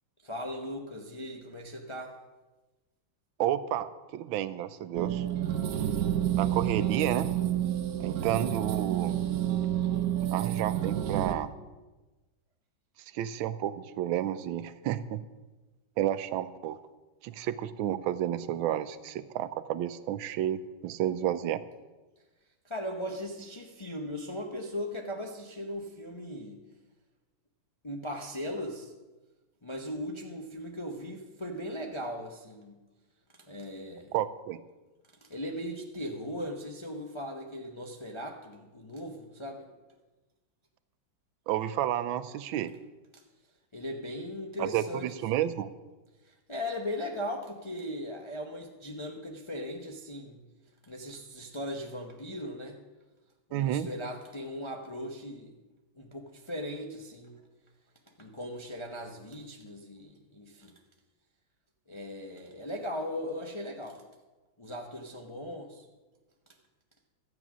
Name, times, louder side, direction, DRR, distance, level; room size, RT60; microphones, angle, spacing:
voice 1, 0.2-2.1 6.7-6.8 8.3-8.5 22.6-26.6 27.8-28.9 29.6-32.8 33.3-34.1 35.2-39.7 43.1-43.2 43.7-45.4 46.2-50.4 50.8-52.8 53.5-55.5 55.9-57.5 58.2-60.7 61.9-64.0 64.6-65.9, left 1 dB, 45° left, 1 dB, 0.3 m, -38 dB
voice 2, 3.4-5.3 6.4-7.3 8.0-9.2 10.3-11.5 13.1-15.2 16.0-16.8 17.2-21.6 34.1-34.6 41.5-42.7 44.6-45.7 53.5-53.9, right 11 dB, 85° right, 13 dB, 1.4 m, -31 dB
sound 1, 4.9-11.3, right 11 dB, 65° right, 0.9 m, -29 dB
12.5 x 8.8 x 6.1 m, 1.2 s
omnidirectional pair, 2.1 m